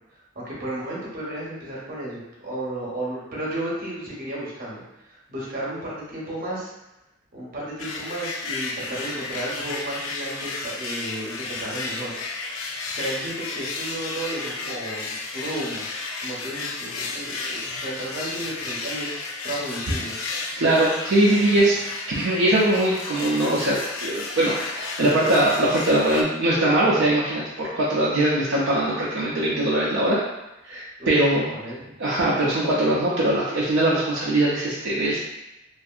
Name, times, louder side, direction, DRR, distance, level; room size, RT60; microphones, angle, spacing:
voice 1, 0.3-6.7 7.3-12.1 12.9-15.8 16.2-20.1 31.0-31.2 31.5-31.9, right 1 dB, 45° right, -6 dB, 0.9 m, -33 dB
sound 1, 7.8-26.2, left 3 dB, 90° left, 0.4 m, -33 dB
voice 2, 20.6-21.8 22.1-30.2 30.6-31.5 32.0-35.2, right 1 dB, 60° right, -7 dB, 0.5 m, -21 dB
2.6 x 2.4 x 2.4 m, 0.93 s
head